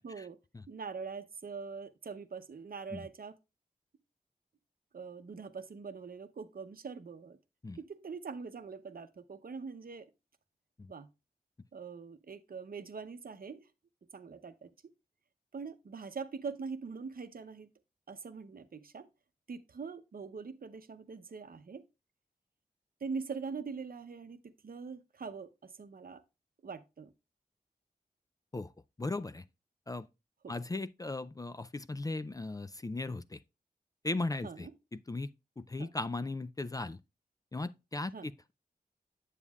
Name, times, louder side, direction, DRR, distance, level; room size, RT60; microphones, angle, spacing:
voice 1, 0.0-0.4 0.7-3.3 4.9-7.4 7.8-10.1 10.9-11.1 11.7-13.7 14.1-14.9 15.5-17.7 18.1-19.1 19.5-21.8 23.0-26.2 26.6-27.1 30.4-30.5 34.4-34.7 35.8-35.9 38.1-38.3, right 5 dB, 65° right, 0.7 m, -43 dB
voice 2, 29.0-29.4 29.9-30.1 30.5-33.4 34.0-35.3 35.6-37.0 37.5-38.5, left 2 dB, 25° left, 0.3 m, -37 dB
8.3 x 7.2 x 2.3 m
wide cardioid pair, 70°, 16 cm